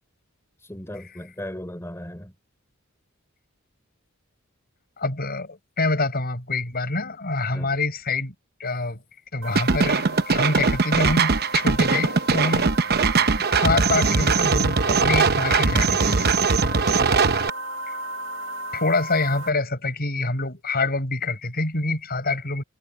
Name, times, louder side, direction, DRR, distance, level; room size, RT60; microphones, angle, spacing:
voice 1, 0.6-2.3 7.5-7.7 12.6-12.8 16.7-17.4, left 1 dB, 15° left, 3.4 m, -38 dB
voice 2, 5.0-8.3 8.6-9.0 9.3-12.7 13.4-16.3 17.9-18.0 18.7-22.6, left 3 dB, 45° left, 7.0 m, -26 dB
sound 1, 9.4-19.5, right 1 dB, 65° right, 1.8 m, -35 dB
sound 2, 9.6-17.5, right 4 dB, 50° right, 0.9 m, -20 dB
head